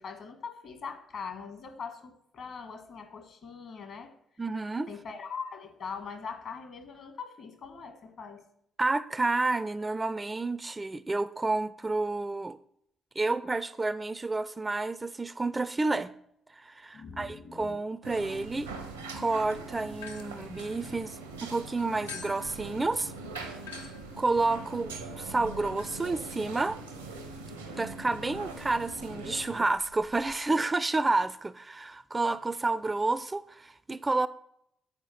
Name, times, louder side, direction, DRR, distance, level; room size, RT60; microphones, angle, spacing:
voice 1, 0.0-4.1 4.9-8.4 16.9-17.8, left 5 dB, 55° left, 1.3 m, -42 dB
voice 2, 4.4-4.9 8.8-12.6 13.2-16.1 16.5-18.7 19.1-23.1 24.2-26.8 27.7-34.3, right 3 dB, 25° right, 0.4 m, -30 dB
sound 1, 18.0-29.6, right 3 dB, 85° right, 0.8 m, -42 dB
sound 2, 20.0-21.4 22.1-30.4, left 6 dB, 85° left, 0.6 m, -50 dB
8.0 x 4.6 x 5.8 m
figure-of-eight pair, 45°, 0 cm